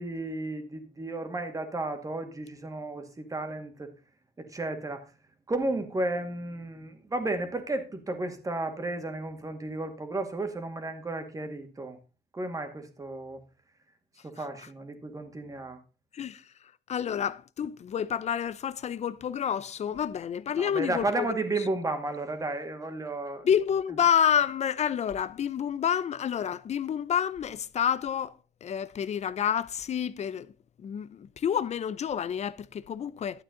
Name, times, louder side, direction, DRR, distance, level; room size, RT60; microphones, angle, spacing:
voice 1, 0.0-3.9 4.4-5.0 5.5-12.0 12.3-13.4 14.2-15.8 20.6-23.5, right 2 dB, 20° right, 2.1 m, -33 dB
voice 2, 16.9-21.3 23.4-28.3 28.6-30.5 30.8-33.4, left 8 dB, 40° left, 0.7 m, -29 dB
12.0 x 8.6 x 3.8 m
cardioid pair, 110°, 17 cm